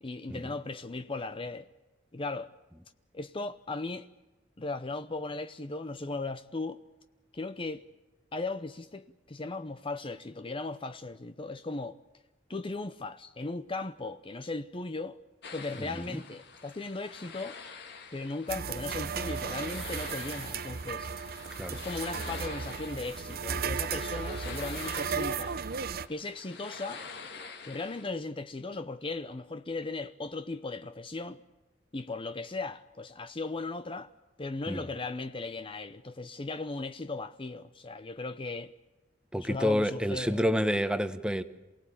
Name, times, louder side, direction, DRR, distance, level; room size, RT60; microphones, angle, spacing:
voice 1, 0.0-1.7 2.1-2.5 3.1-4.1 4.6-6.8 7.3-7.8 8.3-12.0 12.5-15.2 15.5-17.6 18.1-21.1 21.7-25.6 26.1-27.0 27.6-31.4 31.9-34.1 34.4-38.7 39.4-40.4, left 3 dB, 30° left, 0.7 m, -37 dB
sound 1, 15.4-28.0, left 5 dB, 65° left, 2.5 m, -46 dB
sound 2, 18.5-26.1, right 6 dB, 55° right, 0.8 m, -35 dB
voice 2, 39.3-41.4, equal, 5° right, 1.2 m, -28 dB
28.0 x 18.0 x 8.6 m
head